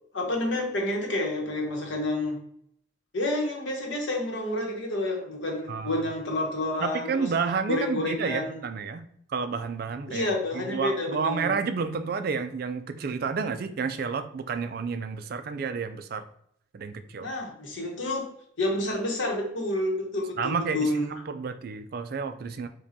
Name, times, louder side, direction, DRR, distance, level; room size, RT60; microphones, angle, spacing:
voice 1, 0.1-2.4 3.1-7.3 7.7-8.6 10.1-11.5 17.2-18.3 18.6-21.1, left 1 dB, 65° left, 1 dB, 0.9 m, -29 dB
voice 2, 5.7-6.0 6.8-9.0 9.3-16.2 16.7-17.3 20.4-20.9 21.3-22.7, right 5 dB, 50° right, 9 dB, 0.3 m, -30 dB
5.0 x 2.2 x 2.7 m, 0.68 s
head